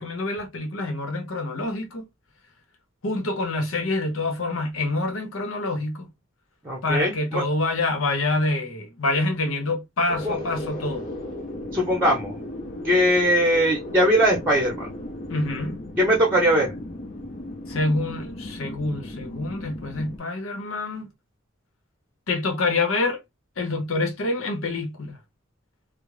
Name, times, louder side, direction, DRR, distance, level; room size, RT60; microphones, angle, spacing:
voice 1, 0.0-2.1 3.0-6.1 6.8-11.1 15.3-15.8 17.7-21.1 22.3-23.2 23.6-25.2, left 2 dB, 85° left, 0.8 m, -26 dB
voice 2, 6.6-7.4 10.3-10.4 11.7-12.4 12.8-14.9 16.0-16.7, equal, 10° right, 0.8 m, -20 dB
sound 1, 10.1-20.2, left 1 dB, 40° left, 0.6 m, -36 dB
2.3 x 2.0 x 3.2 m
head